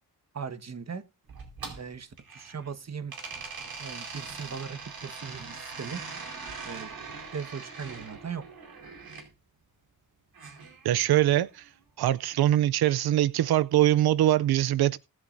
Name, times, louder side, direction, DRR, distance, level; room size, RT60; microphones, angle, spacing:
voice 1, 0.3-1.0 1.7-3.2 3.8-6.0 6.6-6.9 7.3-8.5, right 6 dB, 45° right, 1.4 m, -38 dB
sound 1, 1.3-2.7 3.1-9.3 10.3-11.5, right 4 dB, 75° right, 4.7 m, -42 dB
voice 2, 10.8-11.7 12.0-15.0, right 13 dB, 90° right, 0.5 m, -23 dB
19.5 x 8.4 x 2.6 m
cardioid pair, 70°, 37 cm